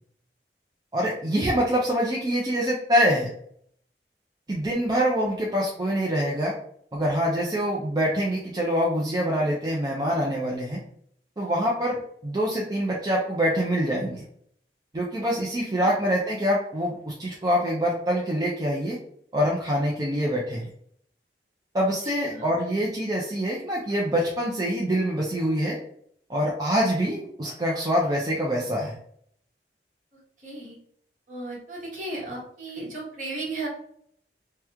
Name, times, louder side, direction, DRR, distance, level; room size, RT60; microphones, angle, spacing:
voice 1, 0.9-3.3 4.5-6.5 6.9-10.8 11.4-14.2 14.9-19.0 19.3-20.7 21.7-25.8 26.3-28.9, equal, 20° right, -4 dB, 0.4 m, -25 dB
voice 2, 22.0-22.5 30.4-30.8 31.3-33.7, right 2 dB, 45° right, -4 dB, 1.3 m, -35 dB
3.0 x 2.2 x 3.4 m, 0.65 s
head